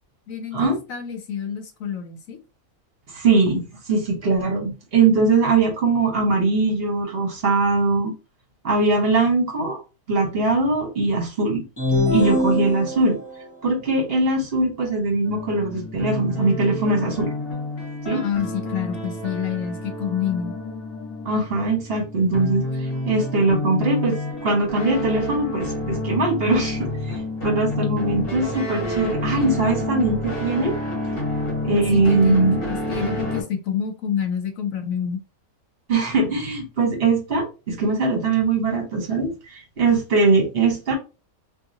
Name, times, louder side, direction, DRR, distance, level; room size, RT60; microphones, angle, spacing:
voice 1, 0.3-2.4 18.1-20.6 31.9-35.2, left 7 dB, 70° left, 1.0 m, -28 dB
voice 2, 3.1-8.1 8.6-9.8 10.1-11.6 12.1-13.2 13.6-17.3 18.0-18.2 21.2-24.2 24.4-30.7 31.6-32.6 35.9-40.9, right 3 dB, 45° right, 1.3 m, -21 dB
sound 1, 11.8-13.4, left 2 dB, 20° left, 0.8 m, -23 dB
sound 2, 15.2-33.4, left 1 dB, 45° left, 1.1 m, -29 dB
2.8 x 2.6 x 2.6 m
omnidirectional pair, 1.5 m